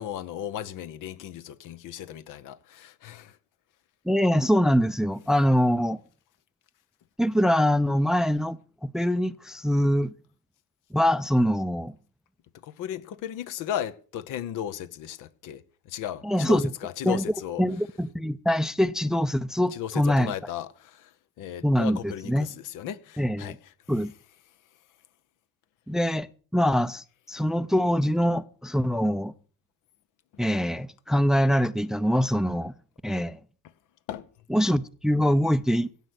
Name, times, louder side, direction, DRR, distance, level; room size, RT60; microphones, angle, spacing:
voice 1, 0.0-3.4 12.6-17.6 19.7-23.6 34.1-34.3, left 10 dB, 65° left, 1.0 m, -35 dB
voice 2, 4.1-6.0 7.2-10.1 10.9-11.9 16.2-16.7 17.0-17.2 17.6-20.3 21.6-22.5 23.2-23.6 23.9-24.1 25.9-26.3 26.5-29.3 30.4-32.7 33.0-33.4 34.5-35.9, equal, ahead, 0.5 m, -24 dB
16.5 x 8.1 x 6.1 m
supercardioid pair, 75°, 33 cm